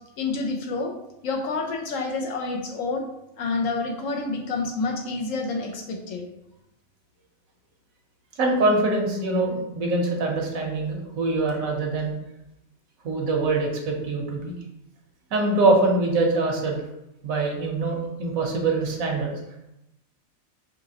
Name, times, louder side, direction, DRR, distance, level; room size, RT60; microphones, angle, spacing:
voice 1, 0.2-0.9 1.2-3.1 3.4-6.3, left 3 dB, 70° left, 2 dB, 1.0 m, -28 dB
voice 2, 8.4-12.1 13.0-14.5 15.3-16.8 17.2-19.4, right 2 dB, 80° right, 1 dB, 1.3 m, -24 dB
4.9 x 2.9 x 2.8 m, 0.86 s
omnidirectional pair, 1.5 m